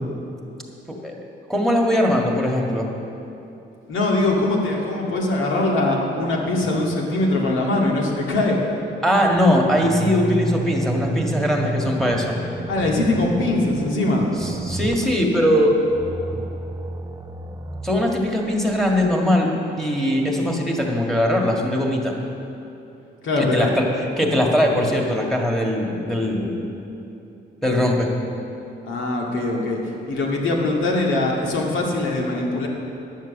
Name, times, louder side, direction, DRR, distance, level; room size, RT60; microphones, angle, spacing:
voice 1, 1.5-2.9 9.0-12.4 14.4-15.8 17.8-22.2 23.4-23.9 24.2-26.6 27.6-28.1, equal, ahead, -1 dB, 1.9 m, -20 dB
voice 2, 3.9-8.6 12.7-14.3 23.2-23.7 28.9-29.8 30.1-32.7, left 2 dB, 80° left, -1 dB, 2.0 m, -22 dB
sound 1, 9.3-19.2, right 2 dB, 15° right, 0.5 m, -31 dB
11.0 x 7.4 x 7.2 m, 2.8 s
cardioid pair, 90°, 20 cm